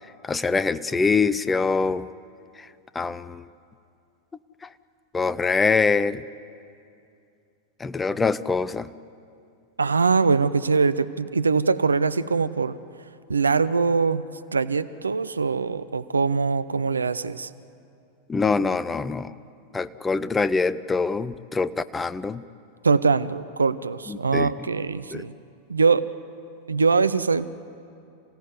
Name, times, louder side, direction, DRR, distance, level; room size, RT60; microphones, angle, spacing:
voice 1, 0.2-2.1 2.6-2.7 2.9-3.4 4.6-4.7 5.1-6.2 7.8-8.9 18.3-19.4 19.7-22.4 24.1-24.7 25.1-25.2, left 4 dB, 15° left, 16 dB, 0.7 m, -24 dB
voice 2, 9.8-12.8 13.3-14.2 14.5-17.5 22.8-25.3 25.7-26.1 26.7-27.5, right 4 dB, 75° right, 14 dB, 0.6 m, -22 dB
27.5 x 16.5 x 9.6 m, 2.5 s
figure-of-eight pair, 90°, 0 cm